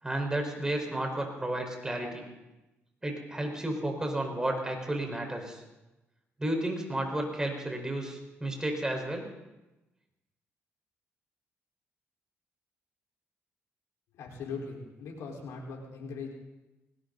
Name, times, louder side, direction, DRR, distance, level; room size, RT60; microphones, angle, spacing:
voice 1, 0.0-2.2 3.0-5.6 6.4-9.2, right 1 dB, 15° right, 3 dB, 4.7 m, -32 dB
voice 2, 14.1-16.3, left 4 dB, 85° left, -1 dB, 4.6 m, -40 dB
20.0 x 17.5 x 4.1 m, 1.0 s
cardioid pair, 85°, 5 cm